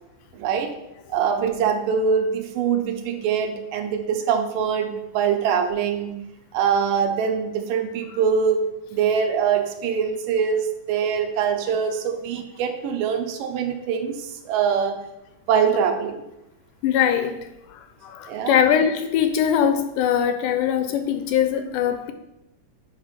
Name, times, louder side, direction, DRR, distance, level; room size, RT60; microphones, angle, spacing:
voice 1, 0.3-0.7 1.1-6.1 6.5-8.6 8.9-15.0 15.5-16.2 18.3-18.6, right 7 dB, 85° right, 2.3 m, -23 dB
voice 2, 16.8-17.4 17.7-22.1, left 8 dB, 80° left, 1.9 m, -22 dB
8.1 x 3.2 x 5.7 m
omnidirectional pair, 3.9 m